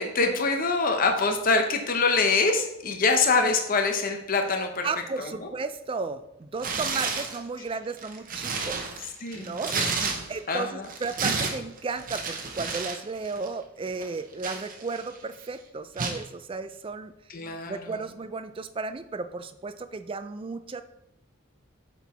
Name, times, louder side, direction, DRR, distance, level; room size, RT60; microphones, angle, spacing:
voice 1, 0.0-4.9 5.2-5.5 9.2-10.1 10.5-10.9 17.3-17.9, left 4 dB, 40° left, 5 dB, 0.7 m, -25 dB
voice 2, 4.8-8.9 9.3-9.8 10.3-17.1 17.7-20.8, right 4 dB, 25° right, 11 dB, 0.3 m, -34 dB
Tearing, 6.6-7.4 7.9-10.5 10.8-13.0 13.3-13.5 14.0-15.2 16.0-16.2, right 4 dB, 40° right, 0.9 m, -31 dB
7.9 x 4.5 x 4.1 m, 0.85 s
head